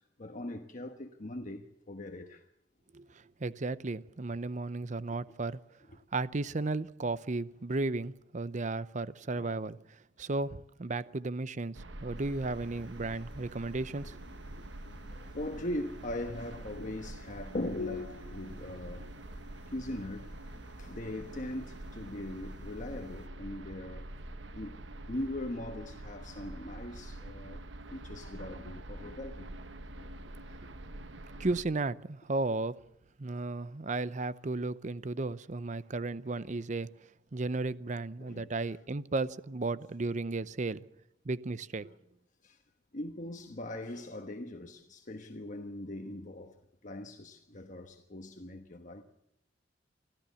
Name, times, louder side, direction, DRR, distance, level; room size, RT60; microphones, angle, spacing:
voice 1, 0.0-2.4 9.3-9.6 15.1-19.1 19.6-24.1 24.5-24.8 25.1-27.6 27.9-29.5 38.2-38.8 42.4-42.6 42.9-46.6 46.8-49.0, left 1 dB, 45° left, 1.2 m, -40 dB
voice 2, 3.4-5.6 6.1-9.8 10.2-14.2 31.4-32.8 33.2-36.9 37.3-40.8 41.2-41.9, right 3 dB, 40° right, 0.7 m, -34 dB
sound 1, 11.7-31.6, right 1 dB, 80° right, 1.2 m, -46 dB
sound 2, 12.2-23.3, left 5 dB, 65° left, 1.1 m, -51 dB
25.0 x 15.0 x 7.0 m
head